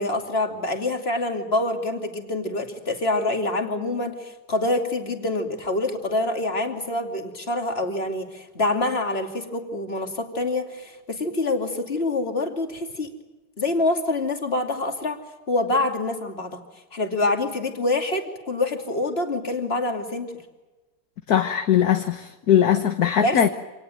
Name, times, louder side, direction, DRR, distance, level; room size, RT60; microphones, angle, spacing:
voice 1, 0.0-13.1 13.6-15.2 15.5-16.6 16.9-20.3 23.2-23.4, left 2 dB, 35° left, 4 dB, 2.9 m, -26 dB
voice 2, 21.3-23.5, left 9 dB, 60° left, 7 dB, 1.6 m, -20 dB
26.5 x 19.0 x 9.1 m, 1.2 s
omnidirectional pair, 1.9 m